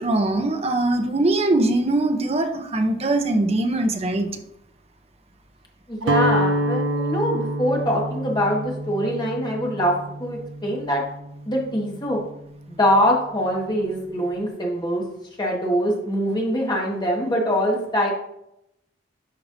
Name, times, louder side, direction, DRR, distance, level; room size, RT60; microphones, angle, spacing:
voice 1, 0.0-4.3, right 2 dB, 35° right, 6 dB, 0.7 m, -21 dB
voice 2, 5.9-9.9 10.2-11.0 11.4-12.2 12.7-15.0 15.4-18.1, equal, 25° left, -1 dB, 1.6 m, -23 dB
Guitar, 6.0-12.1, right 1 dB, 90° right, 0.5 m, -27 dB
11.0 x 4.7 x 2.7 m, 0.80 s
head